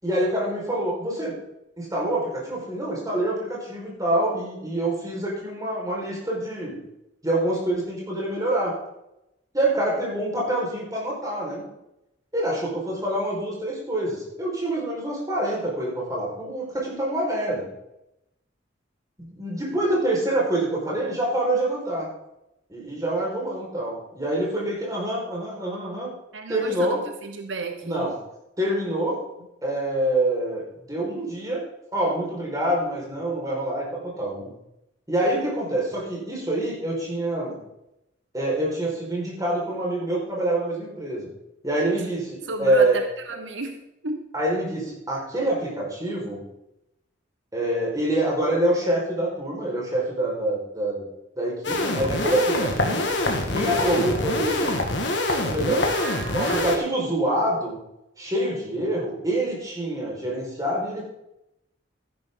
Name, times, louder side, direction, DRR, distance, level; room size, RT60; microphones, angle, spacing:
voice 1, 0.0-1.3 1.8-6.8 7.2-8.7 9.5-11.6 12.3-17.7 19.2-22.1 22.7-26.1 26.5-27.0 27.8-28.1 28.6-29.2 29.6-30.6 30.9-31.6 31.9-33.8 34.2-34.5 35.1-37.6 38.3-41.3 41.6-43.0 44.3-46.4 47.5-51.1 51.4-53.1 53.5-54.7 55.4-55.9 56.3-57.8 58.2-61.1, right 1 dB, 20° right, -4 dB, 4.9 m, -26 dB
voice 2, 26.3-27.0 27.2-28.1 41.9-42.1 42.4-44.2 55.9-56.8, right 3 dB, 80° right, 6 dB, 1.1 m, -33 dB
sound 1, 51.6-56.8, left 2 dB, 65° left, 1.9 m, -25 dB
13.5 x 10.5 x 3.9 m, 0.86 s
head